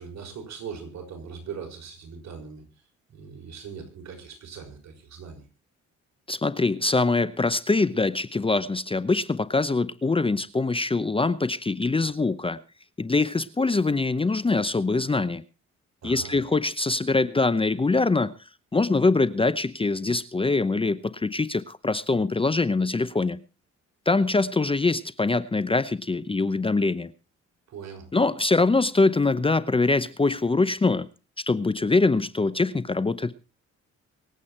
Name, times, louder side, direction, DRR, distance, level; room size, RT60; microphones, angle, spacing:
voice 1, 0.0-2.6 3.1-5.4 16.0-16.4 27.7-28.1, right 6 dB, 65° right, 6.0 m, -40 dB
voice 2, 6.3-12.6 13.0-15.4 16.0-18.3 18.7-23.4 24.1-27.1 28.1-31.1 31.5-33.3, left 3 dB, 20° left, 0.8 m, -23 dB
25.0 x 8.4 x 4.4 m
cardioid pair, 90°, 30 cm